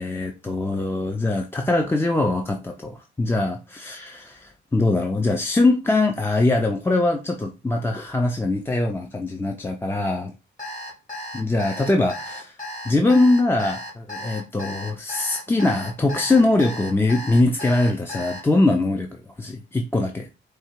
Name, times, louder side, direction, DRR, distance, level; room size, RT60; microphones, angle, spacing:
voice 1, 0.0-10.3 11.3-12.6 12.8-19.1 19.4-20.3, left 2 dB, 10° left, 3 dB, 0.6 m, -22 dB
Alarm, 10.6-18.4, equal, 40° left, 2.5 m, -35 dB
4.6 x 2.4 x 4.6 m, 0.30 s
cardioid pair, 90°, 20 cm